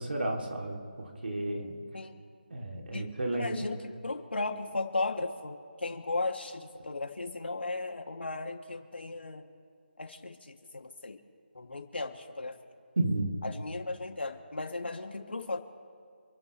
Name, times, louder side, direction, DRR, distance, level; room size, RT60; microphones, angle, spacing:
voice 1, 0.0-1.8 2.5-3.6 13.0-13.3, right 1 dB, 70° right, 0 dB, 3.0 m, -32 dB
voice 2, 3.3-9.5 10.0-11.2 11.5-12.6 13.4-15.6, left 3 dB, 85° left, 3 dB, 2.6 m, -36 dB
28.5 x 12.0 x 3.3 m, 2.3 s
figure-of-eight pair, 170°, 6 cm